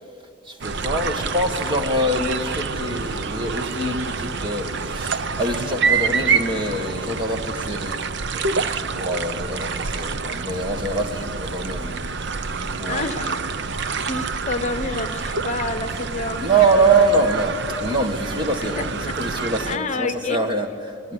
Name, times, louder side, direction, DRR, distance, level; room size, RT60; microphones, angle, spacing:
voice 1, 0.5-8.0 8.3-11.9 12.5-13.4 16.4-21.1, right 2 dB, 25° right, 5 dB, 1.8 m, -24 dB
sound 1, 0.6-19.8, right 5 dB, 55° right, 0.8 m, -27 dB
voice 2, 12.9-13.5 13.8-16.9 18.8-19.1 19.7-20.4, left 3 dB, 35° left, 9 dB, 1.1 m, -29 dB
23.5 x 22.5 x 9.9 m, 2.4 s
head